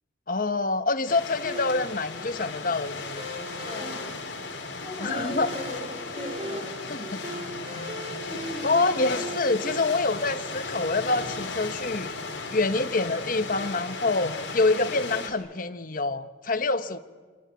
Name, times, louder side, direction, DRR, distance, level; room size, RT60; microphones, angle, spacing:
voice 1, 0.3-3.3 5.0-5.5 6.9-7.2 8.6-12.1 12.5-17.0, left 3 dB, 45° left, 10 dB, 1.1 m, -26 dB
sound 1, 1.1-15.3, left 3 dB, 65° left, 4.3 m, -36 dB
sound 2, 1.5-9.8, equal, 30° right, 2.5 m, -39 dB
voice 2, 3.6-4.0 4.6-7.9, equal, 15° left, -1 dB, 7.5 m, -39 dB
28.0 x 20.5 x 9.6 m, 1.5 s
head